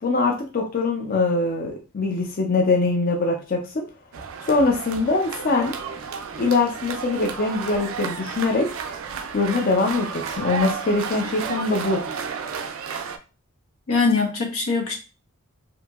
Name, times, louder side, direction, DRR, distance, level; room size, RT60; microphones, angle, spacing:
voice 1, 0.0-3.8 4.4-5.8 6.4-8.7 9.3-12.0, left 3 dB, 45° left, 1 dB, 0.4 m, -23 dB
sound 1, 4.1-13.2, right 6 dB, 70° right, 0.4 m, -32 dB
voice 2, 13.9-14.9, left 4 dB, 90° left, 1 dB, 0.8 m, -22 dB
2.8 x 2.6 x 2.3 m, 0.32 s
head